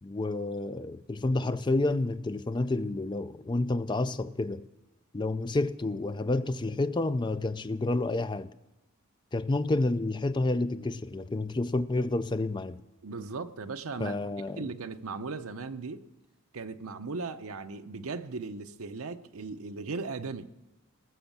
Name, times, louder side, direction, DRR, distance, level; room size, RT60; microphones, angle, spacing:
voice 1, 0.0-4.7 5.1-8.5 9.3-12.8 14.0-14.7, left 2 dB, 20° left, 0.4 m, -29 dB
voice 2, 13.0-14.2 14.5-16.0 16.5-20.7, right 4 dB, 80° right, 0.7 m, -37 dB
19.0 x 7.1 x 7.2 m
head